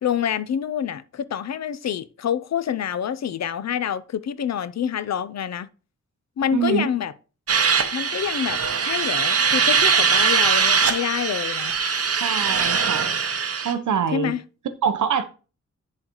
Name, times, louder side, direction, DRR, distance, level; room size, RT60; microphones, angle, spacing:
voice 1, 0.0-5.7 6.4-7.1 7.9-11.8 14.1-14.4, left 9 dB, 65° left, 0.5 m, -27 dB
voice 2, 6.5-6.9 12.2-13.1 13.6-14.3 14.8-15.2, right 7 dB, 85° right, 0.8 m, -24 dB
sound 1, 7.5-13.7, right 6 dB, 50° right, 0.8 m, -21 dB
10.5 x 3.9 x 2.9 m
wide cardioid pair, 110°, 30 cm